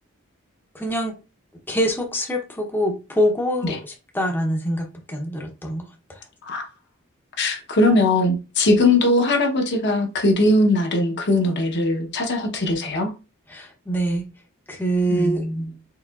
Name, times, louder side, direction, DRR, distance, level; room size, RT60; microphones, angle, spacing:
voice 1, 0.7-1.1 1.7-6.2 13.5-14.2 14.7-15.5, equal, 10° left, 0.6 m, -24 dB
voice 2, 7.4-13.1 15.1-15.7, left 2 dB, 55° left, 0.8 m, -20 dB
4.7 x 3.6 x 2.3 m
head